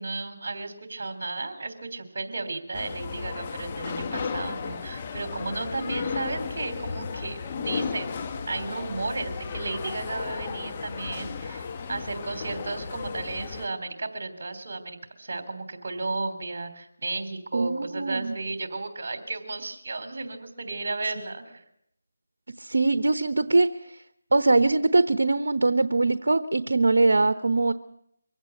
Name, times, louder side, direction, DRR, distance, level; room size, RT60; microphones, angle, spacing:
voice 1, 0.0-8.1 8.5-21.6, right 3 dB, 55° right, 8 dB, 3.3 m, -34 dB
sound 1, 2.7-13.7, left 5 dB, 30° left, 1.3 m, -34 dB
voice 2, 17.5-18.4 22.6-24.0 24.3-27.7, right 3 dB, 75° right, 12 dB, 1.0 m, -22 dB
24.0 x 16.5 x 7.9 m, 0.75 s
figure-of-eight pair, 165°, 0 cm